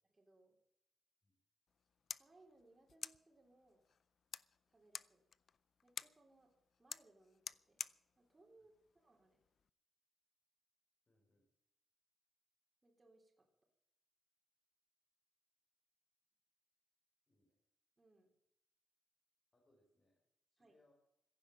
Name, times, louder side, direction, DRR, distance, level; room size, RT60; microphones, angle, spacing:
voice 1, 0.1-0.5 2.1-3.8 4.7-5.2 5.8-6.5 6.8-7.8 8.2-9.4 12.8-13.5 18.0-18.3 20.6-20.8, right 2 dB, 20° right, 0 dB, 3.7 m, -69 dB
sound 1, 1.7-9.7, left 6 dB, 45° left, 0.5 m, -53 dB
voice 2, 11.1-11.5 17.3-17.6 19.5-20.2 20.5-20.9, left 2 dB, 25° left, -1 dB, 4.3 m, -76 dB
16.0 x 10.5 x 7.2 m, 0.79 s
wide cardioid pair, 150°, 0 cm